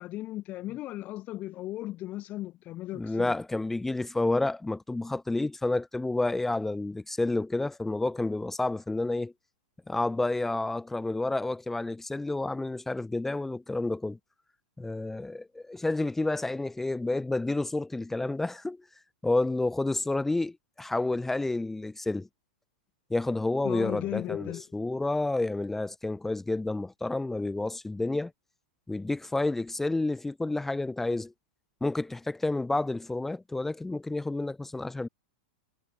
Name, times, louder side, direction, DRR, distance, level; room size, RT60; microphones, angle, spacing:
voice 1, 0.0-3.3 23.6-24.6, left 15 dB, 30° left, 2.0 m, -36 dB
voice 2, 2.9-9.3 9.9-14.2 14.8-18.8 19.2-22.3 23.1-28.3 28.9-31.3 31.8-35.1, left 2 dB, 5° left, 0.6 m, -30 dB
supercardioid pair, 145°, 5 cm